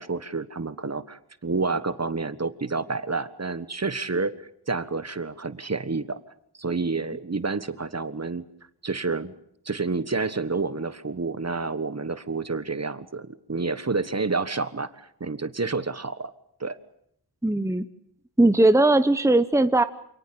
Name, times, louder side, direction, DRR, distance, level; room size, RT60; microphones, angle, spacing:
voice 1, 0.0-6.2 6.6-8.4 8.8-9.3 9.6-16.3 16.6-16.8, right 4 dB, 40° right, 13 dB, 1.4 m, -29 dB
voice 2, 17.4-17.8 18.4-19.8, right 2 dB, 5° right, 11 dB, 1.1 m, -19 dB
28.0 x 19.0 x 8.7 m, 0.70 s
wide cardioid pair, 95°, 39 cm